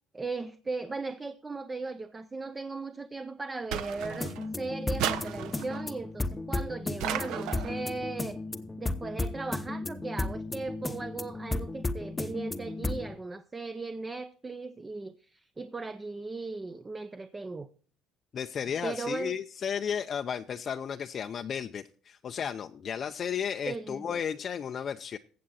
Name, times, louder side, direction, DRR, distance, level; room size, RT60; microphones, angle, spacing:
voice 1, 0.1-8.4 8.8-17.7 18.8-19.4 23.7-24.2, right 3 dB, 15° right, 0.6 m, -37 dB
sound 1, 3.7-4.5 5.0-5.9 7.0-7.8, right 10 dB, 75° right, 0.9 m, -34 dB
sound 2, 4.0-13.2, left 2 dB, 15° left, 0.8 m, -34 dB
voice 2, 18.3-25.2, left 7 dB, 40° left, 0.5 m, -34 dB
15.0 x 7.6 x 4.1 m
cardioid pair, 125°, 0 cm